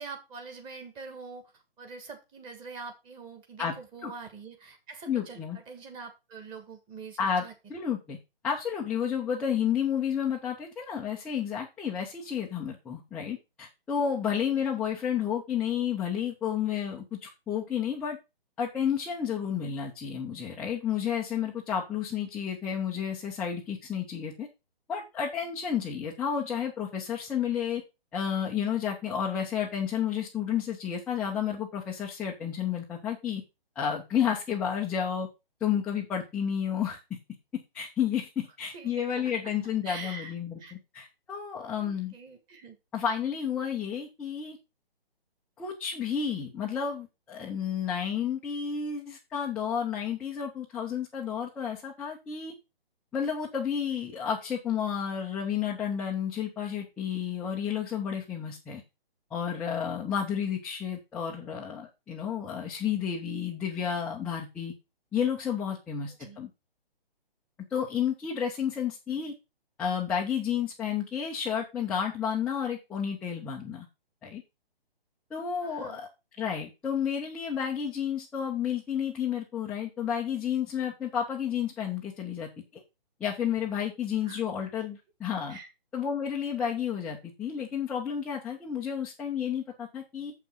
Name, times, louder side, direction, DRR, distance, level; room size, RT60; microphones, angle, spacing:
voice 1, 0.0-1.5 1.8-7.5 14.4-14.7 38.7-39.2 39.8-40.3 40.6-40.7 41.7-42.8 66.1-66.4 75.6-76.0 84.2-84.4 85.5-85.7, right 4 dB, 15° right, 1.6 m, -44 dB
voice 2, 5.1-5.6 7.2-7.4 7.7-8.2 8.4-18.2 18.6-24.5 24.9-27.8 28.1-33.4 33.8-35.3 35.6-37.0 37.5-42.1 42.9-44.6 45.6-52.5 53.1-58.8 59.3-64.7 65.1-66.5 67.7-69.3 69.8-73.9 74.2-74.4 75.3-76.1 76.4-82.8 83.2-85.6 85.9-90.3, left 8 dB, 5° left, 0.5 m, -31 dB
7.2 x 6.0 x 5.5 m
hypercardioid pair, 145°, 30 cm